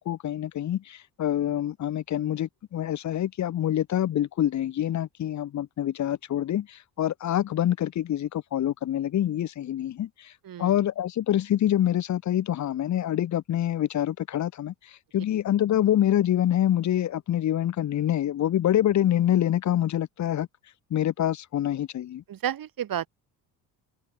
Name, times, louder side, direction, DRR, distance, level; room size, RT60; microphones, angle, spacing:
voice 1, 0.0-10.3 10.6-14.7 15.1-20.5 20.9-22.2, left 11 dB, 40° left, 0.7 m, -26 dB
voice 2, 10.4-10.8 22.3-23.1, right 10 dB, 45° right, 1.6 m, -31 dB
hypercardioid pair, 65°, 46 cm